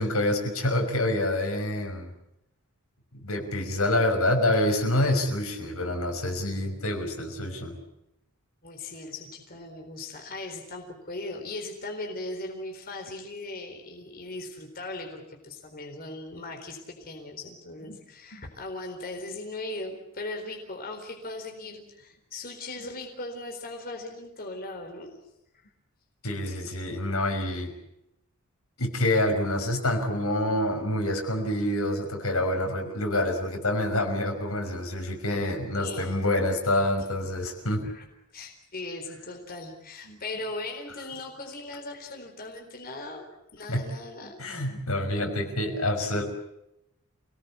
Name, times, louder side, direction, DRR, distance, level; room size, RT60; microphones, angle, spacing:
voice 1, 0.0-2.1 3.2-7.8 18.3-18.4 26.2-27.7 28.8-37.9 40.1-40.2 43.7-43.9 44.4-46.2, left 1 dB, 85° left, 3 dB, 5.7 m, -27 dB
voice 2, 8.6-25.2 25.5-25.7 35.8-36.2 37.8-38.0 38.3-43.3 43.5-44.4, left 2 dB, 45° left, 3 dB, 4.1 m, -38 dB
28.0 x 19.0 x 8.4 m, 0.86 s
head